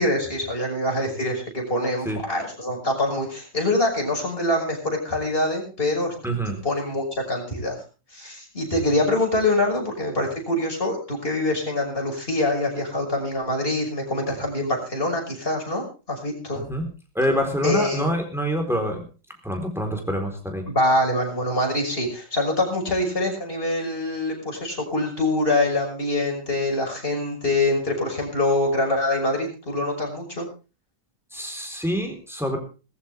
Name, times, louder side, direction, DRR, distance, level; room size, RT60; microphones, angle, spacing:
voice 1, 0.0-6.1 6.6-7.8 8.1-16.6 17.6-18.1 20.7-30.5, left 1 dB, 30° left, 0 dB, 6.4 m, -24 dB
voice 2, 16.6-16.9 17.1-19.0 19.4-20.7 31.3-32.6, equal, ahead, 3 dB, 4.0 m, -26 dB
19.5 x 14.5 x 3.5 m, 0.34 s
omnidirectional pair, 2.1 m